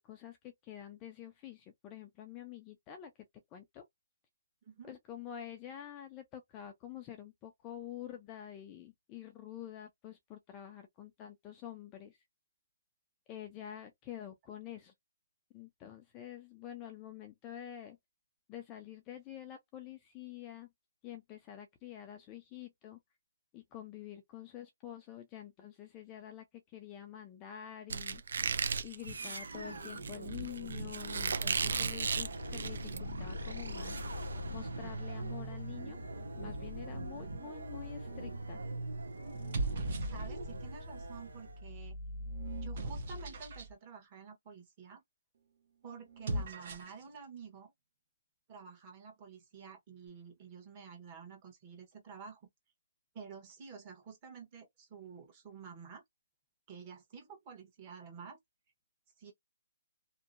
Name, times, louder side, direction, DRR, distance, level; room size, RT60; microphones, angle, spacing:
voice 1, 0.0-3.1 3.5-3.8 4.8-12.2 13.3-14.9 15.5-18.0 18.5-20.7 21.0-23.0 23.5-28.4 28.8-34.1 34.5-36.0 36.4-38.6, left 11 dB, 20° left, 0.4 m, -48 dB
voice 2, 4.6-4.9 40.0-42.0 42.6-45.0 45.8-47.7 48.5-52.4 53.1-56.0 56.7-58.4 59.2-59.3, right 6 dB, 25° right, 1.0 m, -50 dB
Squeak, 27.9-33.0, right 5 dB, 60° right, 0.4 m, -35 dB
sound 1, 29.0-41.7, right 1 dB, 85° right, 0.9 m, -41 dB
sound 2, 38.1-38.5 39.3-40.7 41.4-43.7 46.1-47.0, right 1 dB, 40° right, 0.8 m, -39 dB
2.7 x 2.1 x 2.5 m
hypercardioid pair, 165°, 0 cm